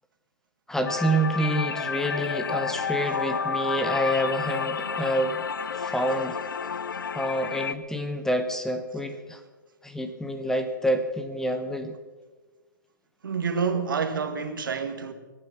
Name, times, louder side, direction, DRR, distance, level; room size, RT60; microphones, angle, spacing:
voice 1, 0.7-5.4 5.7-6.4 7.1-9.4 9.8-11.9, right 1 dB, 5° left, 1.0 m, -27 dB
sound 1, 0.9-7.7, left 6 dB, 80° left, 0.7 m, -30 dB
voice 2, 13.2-15.1, right 5 dB, 75° right, 1.8 m, -28 dB
23.0 x 8.8 x 5.9 m
hypercardioid pair, 125°, 11 cm